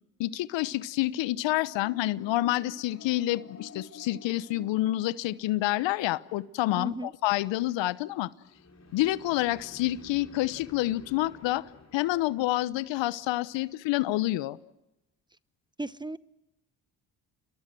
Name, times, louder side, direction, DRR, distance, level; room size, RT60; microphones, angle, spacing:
voice 1, 0.2-8.3 8.9-11.6 11.9-14.6, left 16 dB, 70° left, 18 dB, 1.0 m, -28 dB
sound 1, 1.5-5.8 8.4-13.4, left 4 dB, 35° left, 3.6 m, -51 dB
voice 2, 6.8-7.1 15.8-16.2, right 2 dB, 10° right, 17 dB, 1.0 m, -35 dB
30.0 x 22.0 x 7.7 m, 0.93 s
hypercardioid pair, 55°, 47 cm